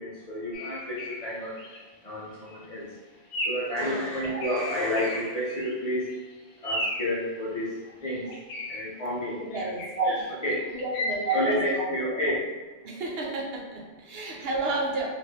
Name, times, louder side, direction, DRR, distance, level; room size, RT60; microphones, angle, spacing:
voice 1, 0.0-2.9 3.5-6.1 6.6-8.4 8.7-10.7 11.2-12.5, equal, 50° left, -7 dB, 0.5 m, -30 dB
sound 1, 0.5-1.2 1.6-1.8 2.3-2.6 3.3-3.7 4.0-5.8 6.1-6.2 6.6-7.1 8.1-8.8 9.5-11.4, left 1 dB, 80° left, 0.9 m, -34 dB
voice 2, 3.8-4.1 9.3-9.9 10.7-12.4 12.8-15.1, right 2 dB, 65° right, -2 dB, 0.8 m, -33 dB
3.1 x 2.4 x 2.7 m, 1.3 s
omnidirectional pair, 1.1 m